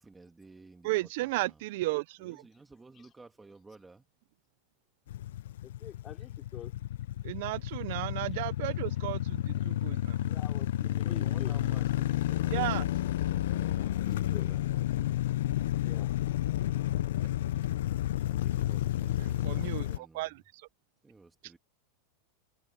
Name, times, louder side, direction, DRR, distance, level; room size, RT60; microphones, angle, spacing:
voice 1, 0.0-1.6 2.2-4.1 11.0-14.7 18.2-20.4 21.0-21.6, right 3 dB, 10° right, 1.4 m, -54 dB
voice 2, 0.8-2.4 7.2-10.2 12.5-12.8 19.4-20.3, right 20 dB, 60° right, 0.4 m, -34 dB
sound 1, 5.1-20.0, left 13 dB, 85° left, 0.4 m, -31 dB
voice 3, 5.6-6.7 10.2-11.6 13.5-14.6 15.8-16.1, left 9 dB, 25° left, 4.5 m, -47 dB
supercardioid pair, 160°, 0 cm